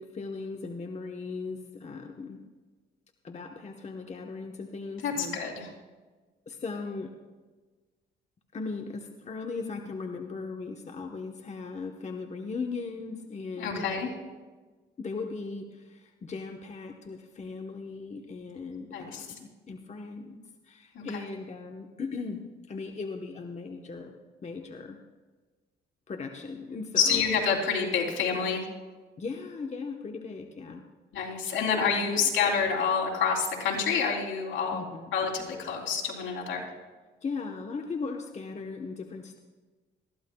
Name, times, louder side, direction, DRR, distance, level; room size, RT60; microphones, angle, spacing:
voice 1, 0.0-2.4 3.2-5.4 6.5-7.1 8.5-13.9 15.0-20.4 20.7-22.4 22.7-24.1 24.4-25.0 26.1-27.2 29.2-30.8 31.2-31.3 31.9-32.3 34.7-35.2 37.2-39.4, left 4 dB, 35° left, 3 dB, 1.1 m, -38 dB
voice 2, 5.0-5.7 13.6-14.1 18.9-19.3 20.9-21.2 27.0-28.6 31.1-34.8 35.1-36.7, left 6 dB, 75° left, -2 dB, 3.3 m, -28 dB
21.0 x 14.5 x 2.3 m, 1.3 s
cardioid pair, 90°, 20 cm